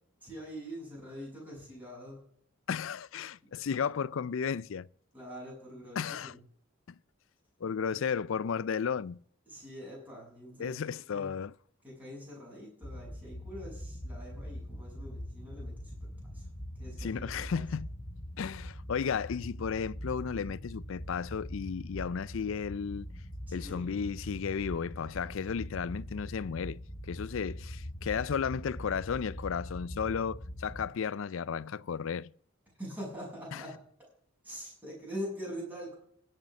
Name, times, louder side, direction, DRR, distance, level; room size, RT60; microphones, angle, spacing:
voice 1, 0.2-2.2 5.1-6.4 7.9-8.0 9.5-11.3 11.8-16.5 16.7-17.6 23.5-24.0 27.1-27.4 32.8-33.7 34.4-35.9, equal, 10° right, 7.3 m, -44 dB
voice 2, 2.7-4.9 6.0-6.3 7.6-9.2 10.6-11.5 17.0-17.9 18.4-23.1 23.5-32.3, left 6 dB, 65° left, 0.4 m, -34 dB
sound 1, 12.8-30.8, equal, 30° left, 1.1 m, -42 dB
16.5 x 6.6 x 7.1 m
head